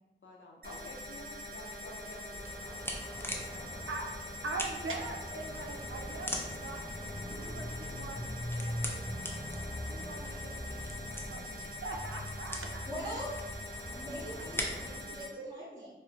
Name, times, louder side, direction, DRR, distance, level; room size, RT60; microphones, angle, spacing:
voice 1, 0.2-2.8 3.2-3.9, left 2 dB, 70° left, 0 dB, 0.6 m, -51 dB
sound 1, 0.6-15.3, left 1 dB, 50° right, 0.8 m, -44 dB
sound 2, 2.3-15.0, left 1 dB, 10° left, 0.5 m, -40 dB
voice 2, 4.4-9.0 9.9-12.9 14.4-14.5 15.1-15.7, right 3 dB, 80° right, 1 dB, 0.5 m, -43 dB
voice 3, 12.9-13.4 13.9-15.9, equal, 20° right, -9 dB, 1.3 m, -42 dB
4.4 x 2.1 x 2.5 m, 1.0 s
wide cardioid pair, 60°, 20 cm